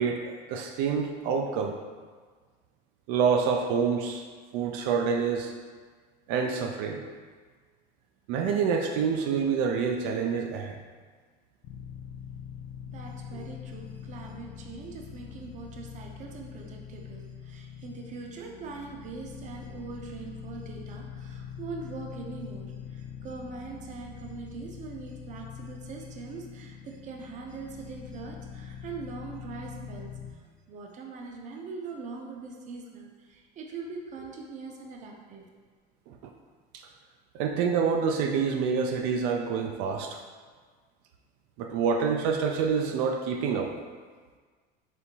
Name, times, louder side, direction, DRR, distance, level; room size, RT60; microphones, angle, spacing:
voice 1, 0.0-1.8 3.1-4.2 4.5-5.5 6.3-7.0 8.3-10.8 36.1-36.3 37.3-40.2 41.6-43.7, right 6 dB, 85° right, 4 dB, 0.4 m, -27 dB
sound 1, 11.6-30.3, left 8 dB, 55° left, 0.4 m, -43 dB
voice 2, 12.9-35.5, right 4 dB, 40° right, 1 dB, 0.6 m, -42 dB
4.4 x 3.4 x 2.8 m, 1.5 s
cardioid pair, 150°, 20 cm